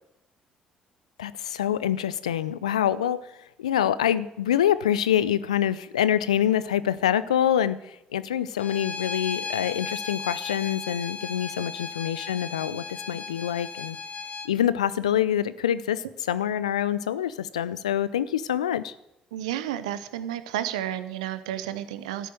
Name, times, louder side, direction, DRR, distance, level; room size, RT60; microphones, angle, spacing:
voice 1, 1.2-14.0 14.4-18.9, left 10 dB, 85° left, 16 dB, 0.6 m, -26 dB
Bowed string instrument, 8.6-14.5, left 5 dB, 40° left, 1.3 m, -36 dB
voice 2, 19.3-22.3, right 11 dB, 80° right, 13 dB, 0.9 m, -31 dB
13.0 x 10.0 x 7.7 m, 0.84 s
figure-of-eight pair, 50°, 3 cm